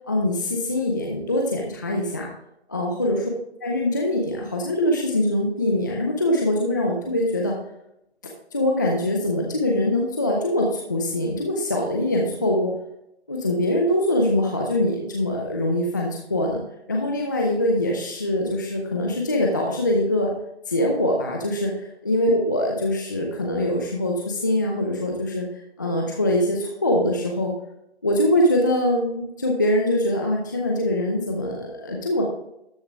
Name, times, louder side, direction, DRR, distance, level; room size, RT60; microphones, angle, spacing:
voice 1, 0.1-2.3 2.7-3.2 3.6-7.6 8.5-12.7 13.3-16.6 16.9-20.3 20.7-25.5 25.8-27.5 28.0-32.2, left 1 dB, 20° left, 0 dB, 0.5 m, -23 dB
13.0 x 4.8 x 3.5 m, 0.80 s
hypercardioid pair, 160°, 33 cm